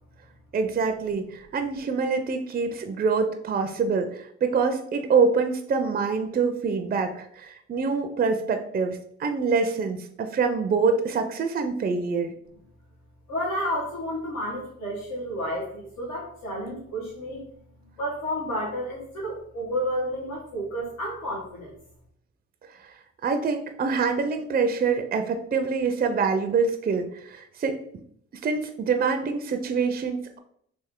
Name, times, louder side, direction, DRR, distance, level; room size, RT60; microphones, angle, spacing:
voice 1, 0.5-12.3 23.2-27.8 28.4-30.4, right 5 dB, 30° right, 7 dB, 0.4 m, -25 dB
voice 2, 13.3-17.4 18.0-21.8, equal, 85° left, -6 dB, 1.2 m, -31 dB
3.3 x 2.5 x 3.6 m, 0.66 s
cardioid pair, 90°, 30 cm